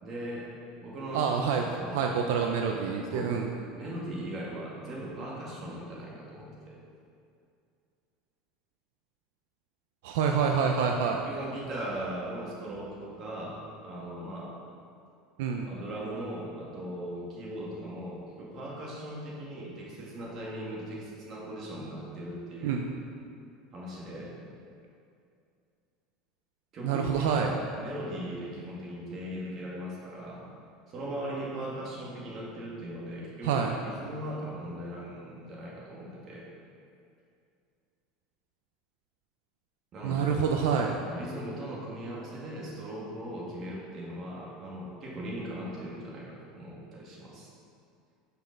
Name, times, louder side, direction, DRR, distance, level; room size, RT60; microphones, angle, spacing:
voice 1, 0.0-0.5 0.8-1.3 1.6-2.0 3.1-3.4 3.8-6.8 11.2-14.5 15.7-22.8 23.7-24.4 26.7-30.4 30.9-33.5 33.8-36.5 39.9-40.4 41.0-47.5, right 1 dB, 35° right, -4 dB, 1.8 m, -39 dB
voice 2, 1.1-3.5 10.0-11.2 15.4-15.6 22.6-22.8 26.8-27.5 33.4-33.7 40.0-41.0, right 6 dB, 80° right, 2 dB, 0.5 m, -27 dB
6.0 x 5.4 x 5.1 m, 2.4 s
supercardioid pair, 145°, 0 cm